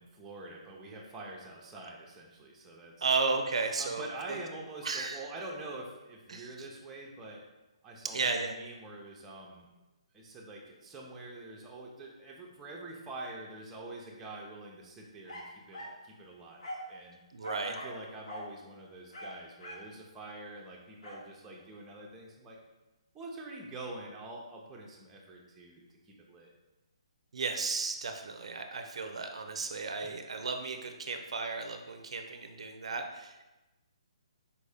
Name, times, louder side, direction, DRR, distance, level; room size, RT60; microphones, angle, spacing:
voice 1, 0.0-3.1 3.8-7.4 7.8-9.7 10.1-17.2 17.6-22.6 23.1-26.5 30.0-30.1, right 2 dB, 10° right, -2 dB, 0.6 m, -46 dB
voice 2, 3.0-4.4 4.8-5.2 6.3-6.7 8.1-8.5 17.3-17.8 27.3-33.5, right 4 dB, 75° right, 5 dB, 0.4 m, -34 dB
sound 1, 15.3-16.0 16.6-16.9 17.4-18.0 18.3-18.5 19.1-19.9 21.0-21.3, equal, 80° left, 1.2 m, -43 dB
4.4 x 2.6 x 3.4 m, 1.1 s
hypercardioid pair, 150°, 3 cm